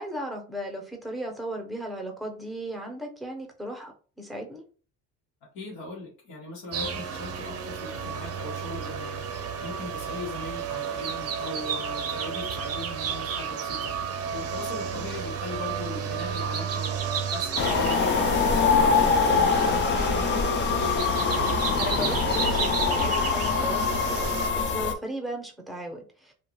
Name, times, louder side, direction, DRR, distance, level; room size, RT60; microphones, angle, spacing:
voice 1, 0.0-4.6 14.9-15.1 21.8-26.3, right 1 dB, ahead, 1 dB, 0.7 m, -36 dB
voice 2, 5.5-14.0 14.3-18.3 18.7-20.4, left 2 dB, 85° left, -4 dB, 1.0 m, -39 dB
sound 1, 6.7-24.5, right 7 dB, 40° right, 0.6 m, -32 dB
sound 2, 17.6-24.9, left 5 dB, 35° left, 0.4 m, -24 dB
2.5 x 2.3 x 2.9 m, 0.39 s
cardioid pair, 95°, 36 cm